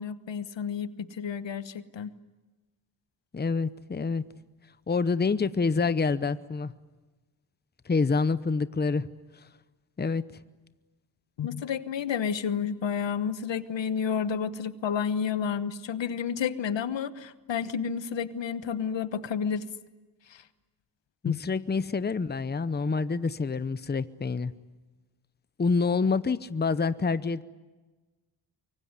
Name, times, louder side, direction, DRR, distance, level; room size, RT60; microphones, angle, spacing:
voice 1, 0.0-2.1 11.4-19.6 20.3-20.4 21.2-21.4, left 7 dB, 85° left, 14 dB, 1.2 m, -30 dB
voice 2, 3.3-4.2 4.9-6.7 7.9-9.1 10.0-10.2 21.2-24.5 25.6-27.4, left 4 dB, 25° left, 15 dB, 0.8 m, -27 dB
24.0 x 24.0 x 9.6 m, 1.2 s
wide cardioid pair, 105°, 43 cm